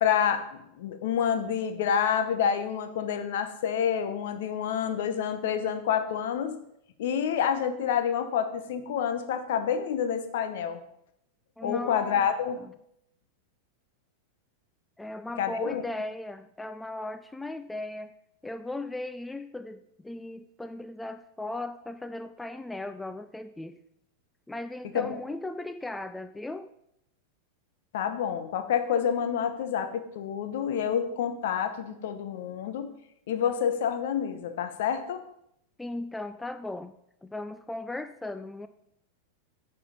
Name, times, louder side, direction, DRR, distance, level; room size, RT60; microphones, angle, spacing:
voice 1, 0.0-6.6 7.0-10.8 11.6-12.6 15.4-15.8 24.9-25.2 27.9-32.9 33.3-35.2, left 8 dB, 55° left, 9 dB, 0.9 m, -28 dB
voice 2, 11.6-12.3 12.6-12.7 15.0-18.1 18.4-23.8 24.5-26.7 35.8-36.9 37.2-38.7, left 2 dB, 5° left, 11 dB, 0.4 m, -37 dB
9.4 x 5.5 x 5.5 m, 0.77 s
figure-of-eight pair, 90°, 0 cm